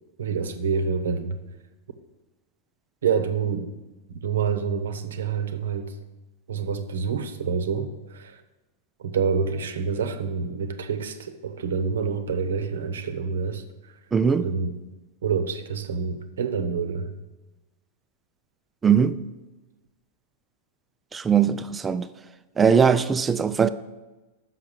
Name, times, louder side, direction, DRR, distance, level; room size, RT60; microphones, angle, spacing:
voice 1, 0.2-1.4 3.0-3.7 4.2-5.9 6.5-8.4 9.0-13.6 14.4-14.7 15.2-17.1, right 6 dB, 90° right, 0.8 m, -27 dB
voice 2, 14.1-14.5 18.8-19.2 21.1-22.1 22.6-23.7, right 7 dB, 15° right, 0.3 m, -20 dB
6.0 x 5.8 x 6.6 m
hypercardioid pair, 125°, 0 cm